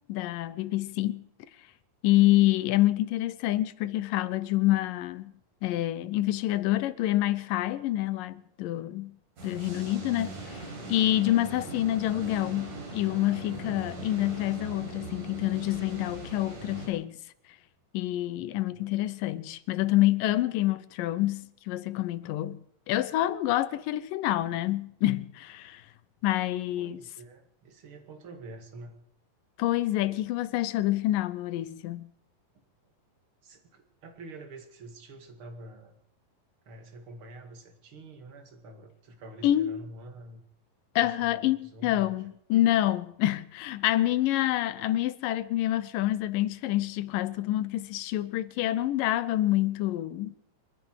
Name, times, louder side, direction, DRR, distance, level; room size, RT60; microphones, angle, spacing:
voice 1, 0.1-1.3 2.0-5.3 5.6-9.2 9.4-17.1 17.9-25.8 26.2-27.0 29.6-32.0 39.4-39.8 41.0-50.4, left 15 dB, 80° left, 2.4 m, -27 dB
sound 1, 9.4-16.9, right 2 dB, 65° right, 5.9 m, -40 dB
voice 2, 18.3-18.9 26.8-29.0 33.4-36.0 36.6-40.4 41.0-42.3, right 2 dB, 40° right, 2.6 m, -47 dB
28.5 x 10.5 x 4.7 m
omnidirectional pair, 3.9 m